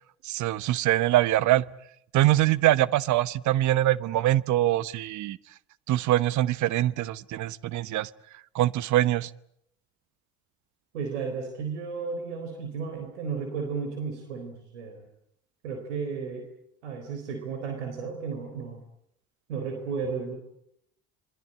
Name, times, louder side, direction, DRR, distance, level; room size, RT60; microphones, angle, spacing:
voice 1, 0.2-1.6 2.1-5.4 5.9-8.1 8.5-9.3, right 14 dB, 55° right, 19 dB, 1.0 m, -23 dB
voice 2, 10.9-15.0 15.6-16.5 16.8-18.8 19.5-20.3, right 5 dB, 90° right, 5 dB, 4.0 m, -33 dB
27.0 x 22.0 x 8.8 m, 0.74 s
hypercardioid pair, 70°, 34 cm